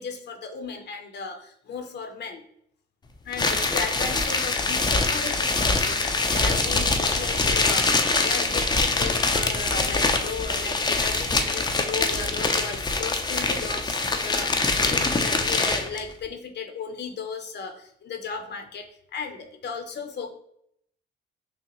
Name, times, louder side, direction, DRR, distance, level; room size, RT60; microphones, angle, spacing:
voice 1, 0.0-2.4 3.2-20.3, left 5 dB, 60° left, 6 dB, 0.7 m, -35 dB
sound 1, 3.3-16.0, left 3 dB, 20° left, 0.5 m, -24 dB
5.8 x 2.1 x 3.0 m, 0.70 s
cardioid pair, 90°, 20 cm